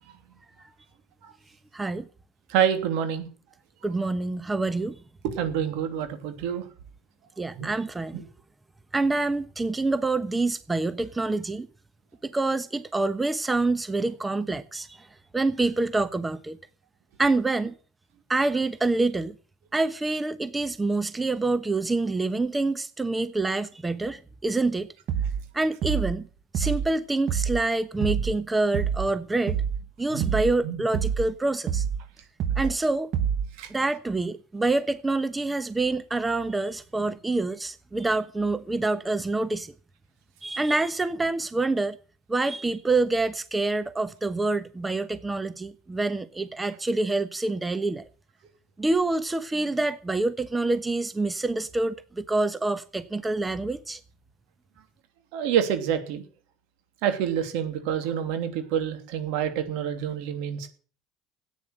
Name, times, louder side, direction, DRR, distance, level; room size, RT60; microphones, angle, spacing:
voice 1, 1.7-2.1 3.8-5.0 7.4-8.2 8.9-11.7 12.2-15.1 15.3-16.6 17.2-17.7 18.3-19.3 19.7-24.9 25.5-26.3 26.5-29.6 30.0-31.8 32.6-33.1 33.7-39.7 40.4-42.0 42.3-48.0 48.8-54.0, right 2 dB, 15° right, 1.1 m, -26 dB
voice 2, 2.5-3.3 5.2-6.6 7.6-7.7 30.1-30.3 30.6-30.8 33.6-33.7 55.3-56.2 57.0-60.7, right 9 dB, 75° right, 2.8 m, -27 dB
sound 1, 25.1-25.5 25.8-26.2 26.5-26.9 27.3-27.6 28.0-28.4 28.7-29.1 29.5-29.8 30.2-30.6 30.9-31.3 31.7-32.0 32.4-32.8 33.1-33.5, right 8 dB, 55° right, 1.3 m, -27 dB
14.0 x 9.4 x 7.8 m
hypercardioid pair, 75°, 0 cm